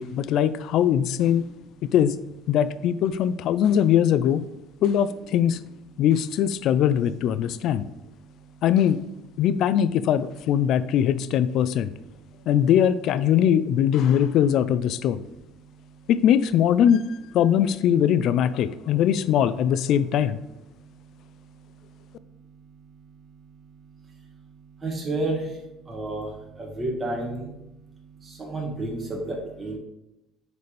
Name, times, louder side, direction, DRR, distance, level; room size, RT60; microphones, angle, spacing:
voice 1, 0.0-1.5 1.9-2.2 2.5-4.4 4.8-5.6 6.0-7.9 8.6-9.0 9.4-11.9 12.5-15.2 16.1-20.4, left 9 dB, 65° left, 14 dB, 0.4 m, -21 dB
voice 2, 8.0-8.6 11.8-12.5 15.6-16.1 18.7-19.0 20.7-29.8, right 2 dB, 25° right, -2 dB, 1.8 m, -35 dB
9.6 x 4.1 x 3.4 m, 0.89 s
cardioid pair, 125°, 0 cm